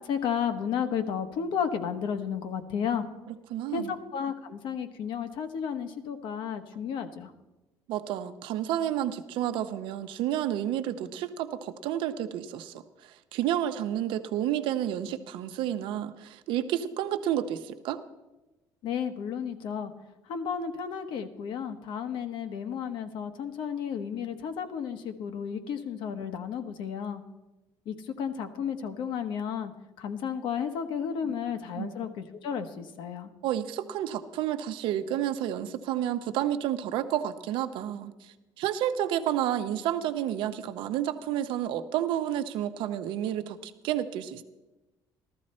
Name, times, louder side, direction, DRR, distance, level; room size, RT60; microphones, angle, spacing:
voice 1, 0.0-3.1 3.7-7.3 18.8-19.9 20.3-27.2 27.9-29.7 30.0-33.3, left 7 dB, 70° left, 8 dB, 1.1 m, -33 dB
voice 2, 3.3-4.0 7.9-18.0 31.2-31.3 31.8-31.9 33.4-44.4, right 11 dB, 75° right, 8 dB, 0.8 m, -30 dB
14.5 x 13.0 x 4.3 m, 1.1 s
cardioid pair, 125°, 9 cm